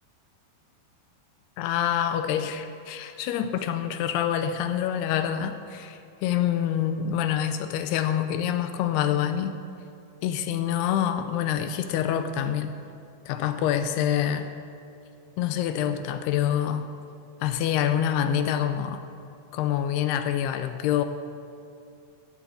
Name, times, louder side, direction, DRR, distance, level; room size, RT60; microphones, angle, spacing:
voice 1, 1.6-9.6 10.2-12.8 13.3-14.5 15.4-16.9 17.4-19.0 19.5-21.0, left 10 dB, 80° left, 9 dB, 2.4 m, -26 dB
15.5 x 9.1 x 8.6 m, 2.5 s
omnidirectional pair, 5.2 m